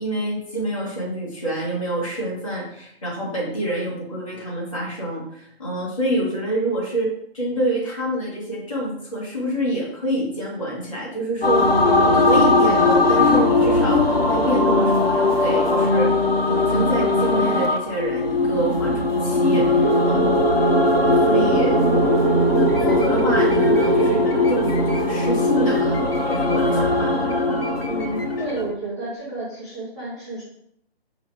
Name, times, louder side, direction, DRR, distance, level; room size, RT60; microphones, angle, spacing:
voice 1, 0.0-16.1 16.4-20.4 21.1-21.8 22.8-25.9 26.3-27.1, right 1 dB, 30° left, -5 dB, 1.5 m, -27 dB
sound 1, 11.4-28.7, left 2 dB, 65° left, 1.0 m, -19 dB
sound 2, 19.8-28.2, right 4 dB, 35° right, 0.4 m, -25 dB
voice 2, 27.8-30.4, right 2 dB, 5° left, -11 dB, 0.9 m, -31 dB
5.4 x 2.0 x 4.6 m, 0.72 s
hypercardioid pair, 180°, 31 cm